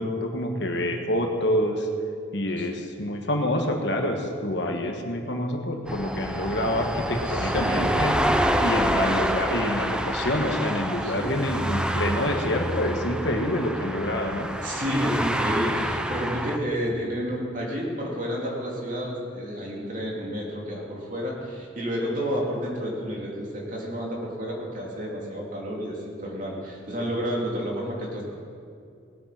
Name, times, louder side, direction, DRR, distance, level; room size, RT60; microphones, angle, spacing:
voice 1, 0.0-1.9 2.3-8.2 8.6-14.5, left 1 dB, 60° left, 3 dB, 1.4 m, -27 dB
sound 1, 5.9-16.6, equal, 5° right, 0.5 m, -27 dB
voice 2, 7.2-8.0 11.0-11.4 14.6-28.2, equal, 40° right, -3 dB, 3.0 m, -30 dB
18.5 x 8.9 x 6.0 m, 2.4 s
head